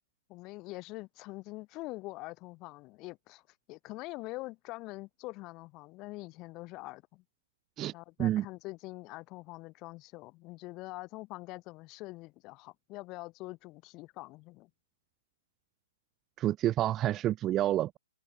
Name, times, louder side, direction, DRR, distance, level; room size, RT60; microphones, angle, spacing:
voice 1, 0.3-3.4 3.7-7.2 7.9-14.7, left 21 dB, 30° left, 3.2 m, -44 dB
voice 2, 16.4-18.0, right 13 dB, 25° right, 0.6 m, -28 dB
hypercardioid pair, 130°, 0 cm